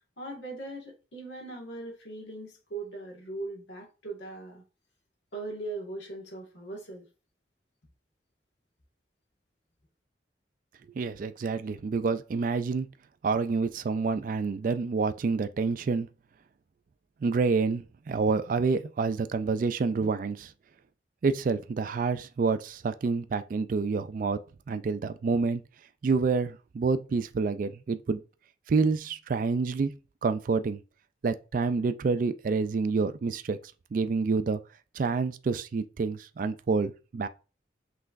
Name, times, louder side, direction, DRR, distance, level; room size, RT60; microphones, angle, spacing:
voice 1, 0.2-4.6 5.3-7.0, right 2 dB, 75° left, 1.6 m, -39 dB
voice 2, 11.0-12.9 13.2-16.1 17.2-20.5 21.2-24.4 24.7-25.6 26.0-28.2 28.7-29.9 30.2-30.8 31.2-34.6 35.0-37.3, right 4 dB, 45° right, 0.3 m, -28 dB
5.8 x 3.3 x 2.5 m
head